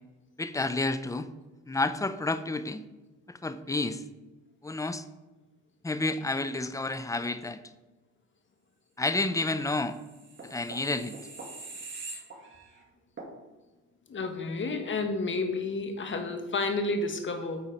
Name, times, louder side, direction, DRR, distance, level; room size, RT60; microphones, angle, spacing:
voice 1, 0.4-1.3 1.7-2.8 3.4-4.0 4.6-5.0 5.8-7.6 9.0-10.0 10.4-11.1, left 2 dB, 10° left, 12 dB, 0.5 m, -30 dB
sound 1, 9.9-12.8 13.2-13.3, right 3 dB, 40° right, 2.1 m, -43 dB
voice 2, 14.1-17.6, left 3 dB, 40° left, 5 dB, 1.4 m, -31 dB
8.2 x 4.2 x 5.2 m, 1.1 s
cardioid pair, 90°, 30 cm